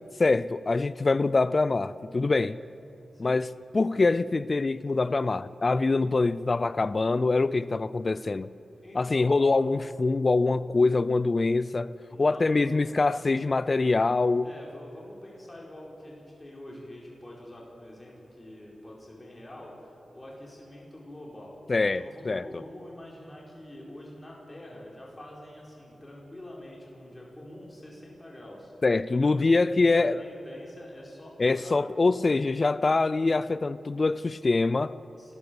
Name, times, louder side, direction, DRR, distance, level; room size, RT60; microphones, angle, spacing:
voice 1, 0.2-2.6 3.2-8.5 8.9-11.9 12.2-14.5 21.7-22.5 28.8-30.2 31.4-34.9, left 3 dB, 40° left, 0.4 m, -24 dB
voice 2, 8.8-9.7 12.1-12.8 14.4-29.4 29.8-31.8 35.1-35.3, left 1 dB, 20° left, 4.6 m, -46 dB
30.0 x 13.5 x 7.0 m
wide cardioid pair, 85°, 0 cm